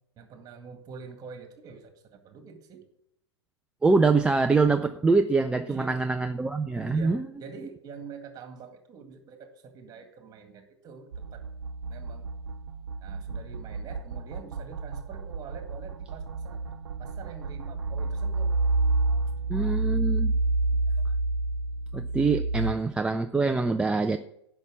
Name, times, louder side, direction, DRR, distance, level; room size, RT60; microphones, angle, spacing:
voice 1, 0.2-2.8 5.7-6.0 6.7-11.4 11.9-12.3 13.0-16.6 17.0-18.6 20.4-20.9 22.0-22.3, right 5 dB, 25° right, 6 dB, 2.0 m, -45 dB
voice 2, 3.8-7.3 19.5-20.3 21.9-24.2, right 3 dB, 5° right, 6 dB, 0.4 m, -24 dB
sound 1, 11.1-22.7, right 3 dB, 75° right, 0.4 m, -29 dB
10.5 x 5.8 x 7.3 m, 0.76 s
figure-of-eight pair, 100°, 14 cm